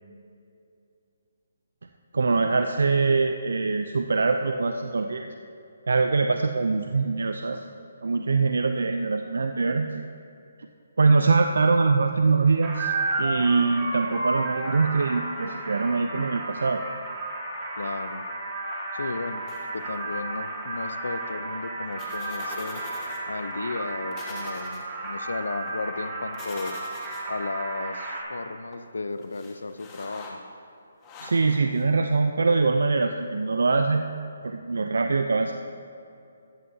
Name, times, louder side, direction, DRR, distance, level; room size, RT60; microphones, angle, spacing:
voice 1, 2.1-5.3 5.9-7.7 8.0-10.1 11.0-12.9 13.2-16.8 31.2-34.1 34.4-35.5, right 4 dB, 75° right, 6 dB, 0.5 m, -23 dB
sound 1, 12.6-28.2, right 2 dB, 25° right, 2.4 m, -33 dB
voice 2, 17.8-18.2 18.9-19.5 19.7-22.8 23.3-26.7 27.3-30.4, left 3 dB, 80° left, 11 dB, 0.7 m, -34 dB
sound 2, 19.5-19.9 21.9-23.2 23.5-23.6 24.1-24.8 26.3-27.3 28.7-28.8 29.2-30.3 31.0-31.8, left 3 dB, 20° left, 1.5 m, -43 dB
15.0 x 11.0 x 2.8 m, 2.7 s
hypercardioid pair, 150°, 0 cm